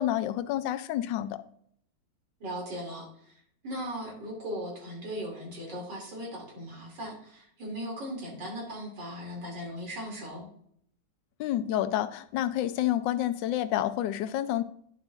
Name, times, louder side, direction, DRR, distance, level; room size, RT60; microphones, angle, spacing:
voice 1, 0.0-1.4 11.4-14.6, left 12 dB, 85° left, 1.3 m, -29 dB
voice 2, 2.4-3.3 3.6-10.5, equal, 75° right, 3.3 m, -38 dB
11.0 x 7.5 x 2.5 m
omnidirectional pair, 1.9 m